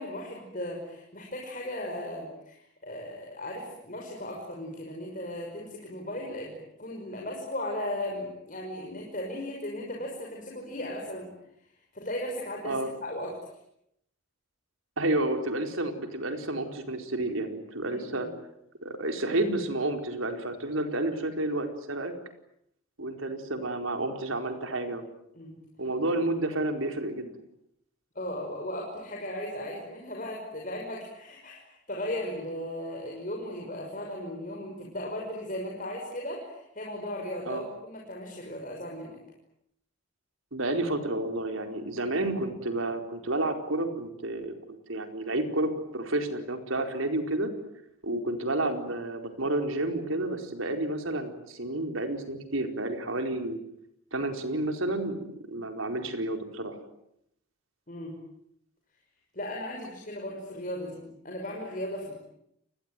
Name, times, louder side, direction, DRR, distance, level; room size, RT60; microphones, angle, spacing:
voice 1, 0.0-11.3 11.9-13.4 17.9-18.3 25.3-25.6 28.1-39.2 57.9-58.2 59.3-62.1, left 1 dB, 40° left, -1 dB, 5.8 m, -36 dB
voice 2, 15.0-18.3 18.8-22.1 23.0-25.0 25.8-27.4 37.4-37.6 40.5-44.5 44.9-47.5 48.0-53.6 54.1-56.8, right 2 dB, 90° right, 5 dB, 4.6 m, -30 dB
30.0 x 20.5 x 9.3 m, 0.77 s
head